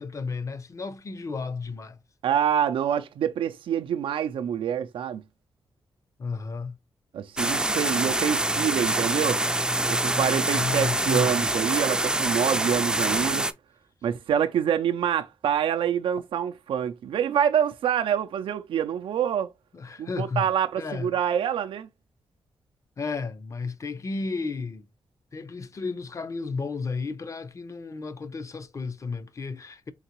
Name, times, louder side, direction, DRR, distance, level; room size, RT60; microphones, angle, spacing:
voice 1, 0.0-2.0 6.2-6.7 10.5-11.5 19.7-20.4 20.8-21.1 23.0-24.9 25.3-29.9, left 4 dB, 35° left, 0.6 m, -33 dB
voice 2, 2.2-5.2 7.1-9.4 9.9-13.5 14.0-19.5 20.0-21.9, right 9 dB, 85° right, 0.4 m, -26 dB
sound 1, 7.4-13.5, right 1 dB, 10° right, 0.4 m, -25 dB
3.9 x 3.6 x 2.9 m
cardioid pair, 95°, 9 cm